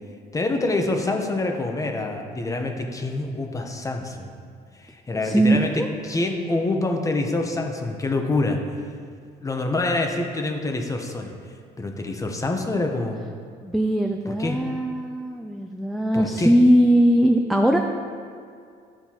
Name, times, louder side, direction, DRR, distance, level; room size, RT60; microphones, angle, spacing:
voice 1, 0.3-4.3 4.7-8.6 9.4-11.3 11.8-13.2 14.3-14.6 16.1-16.5, left 2 dB, 20° left, 3 dB, 0.8 m, -26 dB
voice 2, 5.2-5.9 13.6-17.8, right 1 dB, ahead, 3 dB, 0.3 m, -20 dB
12.0 x 4.4 x 2.9 m, 2.2 s
cardioid pair, 110°, 17 cm